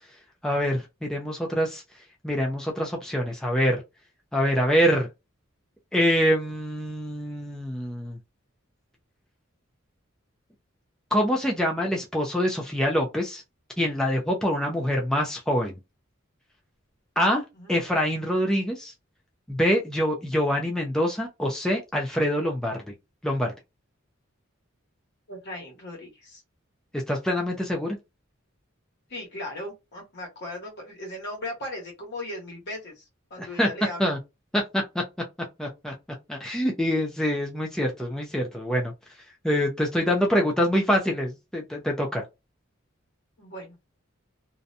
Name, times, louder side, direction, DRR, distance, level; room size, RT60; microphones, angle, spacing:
voice 1, 0.4-1.8 2.2-3.8 4.3-5.1 5.9-8.2 11.1-13.4 13.8-15.7 17.2-17.4 17.7-18.9 19.5-22.8 23.2-23.5 26.9-28.0 33.4-33.7 34.0-34.2 34.5-35.0 35.6-35.9 36.3-38.9 39.4-42.2, equal, 5° left, 0.4 m, -25 dB
voice 2, 25.3-26.4 29.1-33.0 33.3-34.1 43.4-43.8, left 1 dB, 60° left, 1.2 m, -37 dB
2.5 x 2.2 x 2.6 m
head